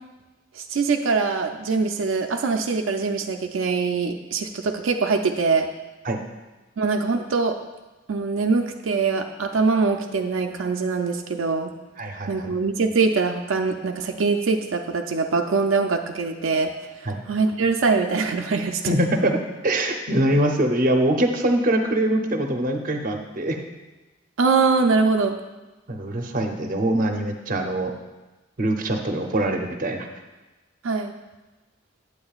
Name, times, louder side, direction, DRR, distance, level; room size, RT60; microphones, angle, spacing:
voice 1, 0.5-5.7 6.8-7.5 8.1-11.7 12.3-16.7 17.3-19.0 24.4-25.4 30.8-31.1, right 4 dB, 80° right, 3 dB, 0.5 m, -23 dB
voice 2, 12.0-12.5 17.1-17.2 18.9-19.4 19.6-23.6 25.9-27.9 28.6-30.1, right 1 dB, 45° right, 4 dB, 0.6 m, -23 dB
8.6 x 8.3 x 2.4 m, 1.2 s
head